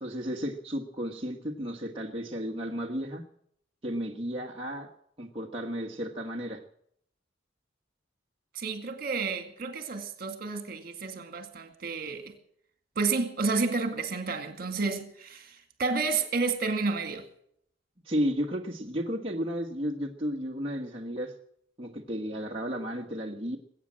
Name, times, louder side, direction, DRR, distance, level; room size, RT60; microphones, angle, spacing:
voice 1, 0.0-3.2 3.8-4.9 5.2-6.6 18.0-21.3 21.8-23.6, equal, 30° right, 1.4 m, -33 dB
voice 2, 8.6-12.3 13.0-17.2, right 4 dB, 55° right, 2.2 m, -31 dB
21.5 x 8.7 x 7.4 m
head